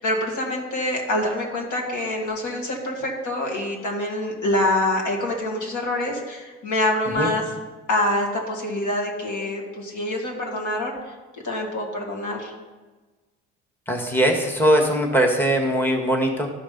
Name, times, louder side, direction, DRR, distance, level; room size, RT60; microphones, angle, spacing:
voice 1, 0.0-7.4 7.9-10.9 11.4-12.5, left 1 dB, 55° left, 0 dB, 2.3 m, -25 dB
voice 2, 13.9-16.5, equal, 5° left, 0 dB, 1.6 m, -20 dB
12.5 x 5.2 x 5.2 m, 1.3 s
hypercardioid pair, 55°, 35 cm